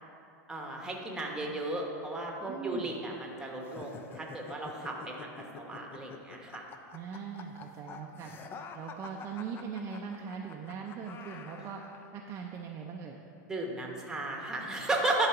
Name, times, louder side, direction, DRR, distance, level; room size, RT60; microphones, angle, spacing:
voice 1, 0.5-5.3 5.5-6.6 13.4-15.3, right 2 dB, 5° right, 0 dB, 1.1 m, -34 dB
voice 2, 2.5-3.0 6.9-8.3 8.7-11.8 12.1-13.2, right 6 dB, 30° right, 0 dB, 0.5 m, -40 dB
sound 1, 3.6-12.1, left 5 dB, 25° left, 0.5 m, -48 dB
11.0 x 4.1 x 5.8 m, 2.7 s
supercardioid pair, 140°, 10 cm